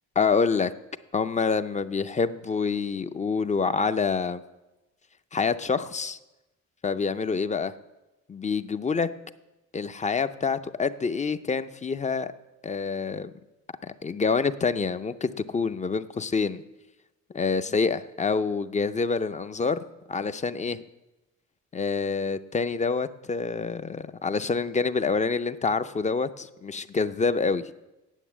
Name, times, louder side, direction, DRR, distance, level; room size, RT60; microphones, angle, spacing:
voice 1, 0.2-0.7 1.1-4.4 5.3-6.2 6.8-7.7 8.3-9.1 9.7-12.3 12.6-13.3 13.8-16.6 17.3-19.8 20.1-20.8 21.7-27.6, left 5 dB, 25° left, 12 dB, 0.5 m, -27 dB
9.1 x 7.8 x 7.3 m, 1.0 s
cardioid pair, 90°, 30 cm